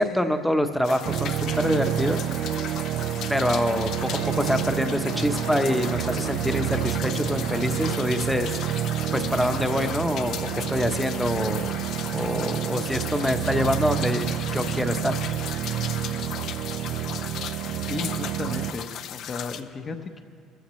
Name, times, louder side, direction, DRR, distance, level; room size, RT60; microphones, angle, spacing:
voice 1, 0.0-2.3 3.3-4.1 4.3-8.8 9.1-11.7 12.1-15.2, equal, ahead, 7 dB, 0.8 m, -25 dB
sound 1, 0.8-19.6, left 9 dB, 60° left, 0.6 m, -37 dB
sound 2, 1.0-18.7, right 11 dB, 60° right, 0.4 m, -29 dB
sound 3, 3.9-16.3, left 4 dB, 90° left, 1.7 m, -43 dB
voice 2, 17.9-20.2, left 4 dB, 35° left, 6 dB, 0.8 m, -34 dB
20.0 x 14.5 x 3.2 m, 2.2 s
cardioid pair, 115°, 0 cm